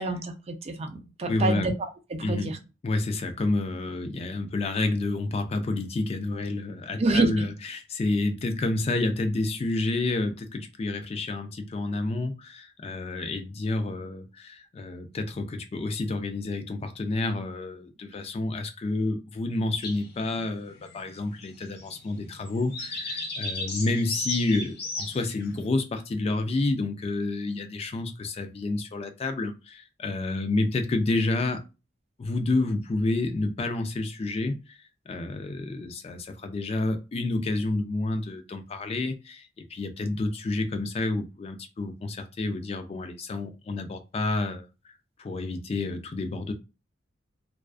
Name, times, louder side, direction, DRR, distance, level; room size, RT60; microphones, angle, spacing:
voice 1, 0.0-2.6 7.0-7.5, right 2 dB, 35° right, 0.4 m, -28 dB
voice 2, 1.3-1.7 2.2-2.6 2.8-31.6 32.2-46.5, left 2 dB, 35° left, 0.3 m, -29 dB
sound 1, 19.8-25.6, left 2 dB, 60° left, 0.7 m, -36 dB
2.3 x 2.3 x 2.3 m
head